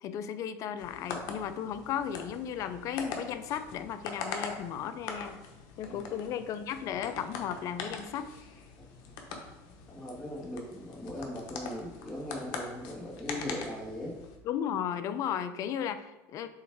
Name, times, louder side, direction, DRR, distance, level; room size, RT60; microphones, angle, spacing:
voice 1, 0.0-5.5 5.8-8.3 14.4-16.5, left 9 dB, 50° left, 11 dB, 0.5 m, -35 dB
sound 1, 0.8-14.4, left 4 dB, 65° left, 1.0 m, -42 dB
voice 2, 9.9-14.2, left 1 dB, 10° left, -8 dB, 1.8 m, -39 dB
7.3 x 3.1 x 4.5 m, 1.1 s
supercardioid pair, 120°, 7 cm